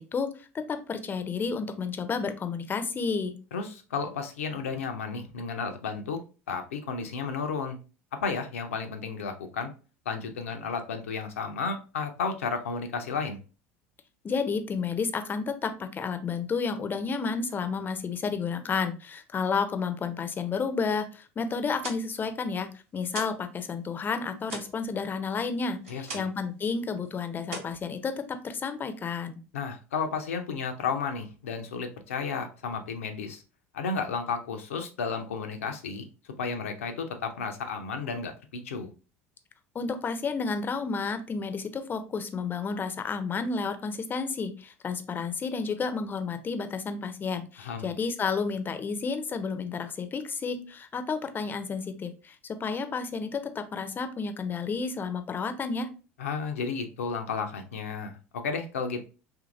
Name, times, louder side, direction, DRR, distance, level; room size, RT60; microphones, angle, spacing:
voice 1, 0.0-3.3 14.2-22.7 22.9-29.4 39.7-55.9, left 5 dB, 30° left, 9 dB, 0.5 m, -31 dB
voice 2, 3.5-6.2 6.5-7.8 8.2-9.7 10.1-13.4 25.9-26.2 29.5-33.4 33.7-36.1 36.4-38.9 47.6-47.9 56.2-59.0, left 5 dB, 80° left, 5 dB, 0.5 m, -33 dB
sound 1, 21.6-23.5 23.8-26.5 26.8-27.1 27.4-28.5, right 3 dB, 80° right, 0.9 m, -42 dB
2.8 x 2.6 x 2.4 m, 0.34 s
hypercardioid pair, 75°, 7 cm